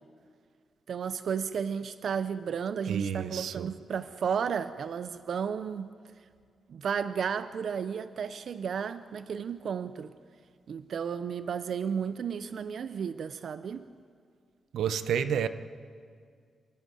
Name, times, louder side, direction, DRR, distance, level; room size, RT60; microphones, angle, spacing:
voice 1, 0.9-5.9 6.7-10.1 10.7-13.8, right 7 dB, 55° right, 12 dB, 0.5 m, -33 dB
voice 2, 2.9-3.7 14.7-15.5, right 8 dB, 90° right, 12 dB, 0.8 m, -30 dB
28.0 x 11.0 x 9.3 m, 2.1 s
wide cardioid pair, 165°, 0 cm